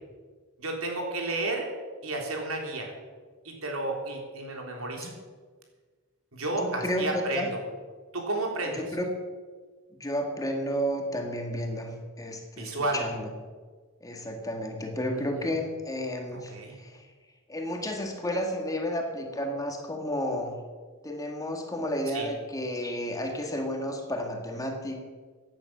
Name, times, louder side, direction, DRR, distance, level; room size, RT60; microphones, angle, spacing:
voice 1, 0.6-1.7 2.0-2.9 3.4-5.1 6.3-7.5 8.1-8.8 12.6-13.0 15.1-15.2 16.3-16.8 22.1-22.3, right 2 dB, 85° right, 1 dB, 3.6 m, -32 dB
voice 2, 6.6-7.5 8.7-9.1 9.9-11.9 12.2-13.3 14.0-17.1 17.5-20.5 21.0-25.0, equal, 15° left, 3 dB, 2.0 m, -32 dB
16.5 x 10.5 x 6.2 m, 1.5 s
head